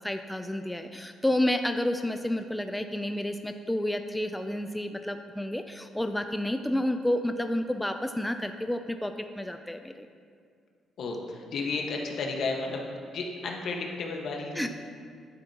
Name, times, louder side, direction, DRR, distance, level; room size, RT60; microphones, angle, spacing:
voice 1, 0.0-10.1 14.5-14.7, left 1 dB, 5° left, 6 dB, 0.4 m, -30 dB
voice 2, 11.0-12.8 13.1-14.7, left 3 dB, 65° left, 1 dB, 1.4 m, -33 dB
11.0 x 8.9 x 2.9 m, 2.2 s
cardioid pair, 90°, 0 cm